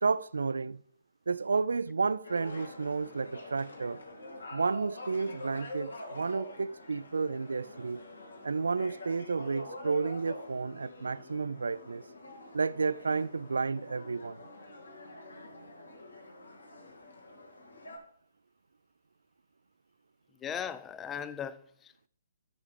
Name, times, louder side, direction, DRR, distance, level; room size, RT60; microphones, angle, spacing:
voice 1, 0.0-0.8 1.3-4.0 4.5-8.0 8.4-12.0 12.5-14.4, right 4 dB, 65° right, 0.3 m, -31 dB
sound 1, 2.2-18.0, left 1 dB, 75° left, 2.3 m, -46 dB
voice 2, 20.4-22.1, left 8 dB, 15° left, 0.4 m, -38 dB
13.5 x 7.1 x 3.3 m
figure-of-eight pair, 130°, 0 cm